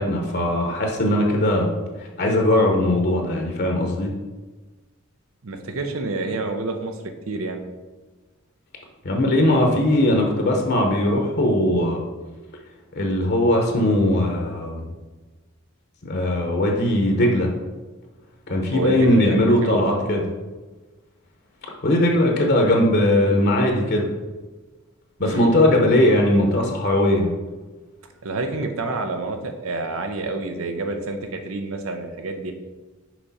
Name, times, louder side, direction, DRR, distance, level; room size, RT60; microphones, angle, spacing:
voice 1, 0.0-1.7 2.0-4.1 9.0-12.1 13.0-14.9 16.0-17.5 18.5-20.3 21.8-24.1 25.2-27.3, left 1 dB, 50° left, 1 dB, 0.8 m, -19 dB
voice 2, 5.4-7.0 7.3-7.6 18.7-19.9 25.2-25.7 28.2-32.5, right 2 dB, 80° right, 6 dB, 0.7 m, -28 dB
6.1 x 4.8 x 4.1 m, 1.2 s
head